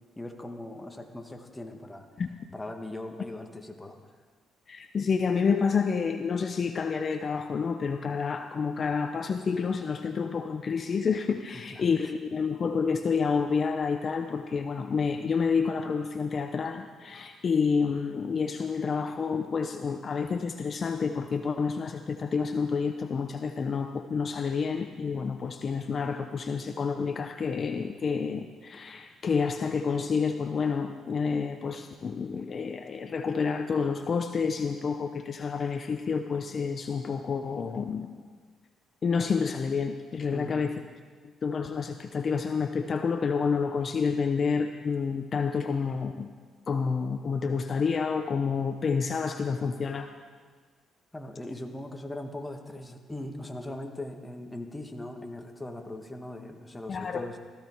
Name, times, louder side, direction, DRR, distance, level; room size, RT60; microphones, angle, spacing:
voice 1, 0.2-2.1 2.5-4.0 11.5-12.1 40.3-40.6 51.1-57.4, left 1 dB, 15° left, 4 dB, 1.6 m, -40 dB
voice 2, 4.7-38.2 39.0-40.7 41.4-46.3 46.7-50.1 56.9-57.3, left 5 dB, 45° left, 7 dB, 0.7 m, -29 dB
17.0 x 14.5 x 4.6 m, 1.5 s
cardioid pair, 90°, 0 cm